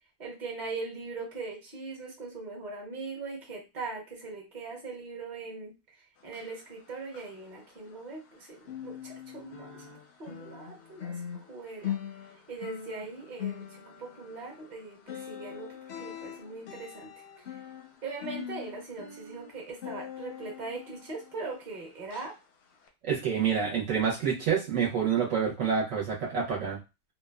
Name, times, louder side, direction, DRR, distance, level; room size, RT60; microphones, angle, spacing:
voice 1, 0.2-5.7 6.2-9.8 10.2-11.1 11.5-11.9 12.5-17.1 18.0-22.3, right 3 dB, 35° right, -2 dB, 0.9 m, -40 dB
sound 1, 6.2-8.3 8.6-21.7 22.1-22.3 22.8-22.9, left 9 dB, 65° left, 0.7 m, -42 dB
voice 2, 23.0-26.8, right 7 dB, 65° right, -4 dB, 1.0 m, -27 dB
2.7 x 2.2 x 2.2 m, 0.27 s
omnidirectional pair, 1.5 m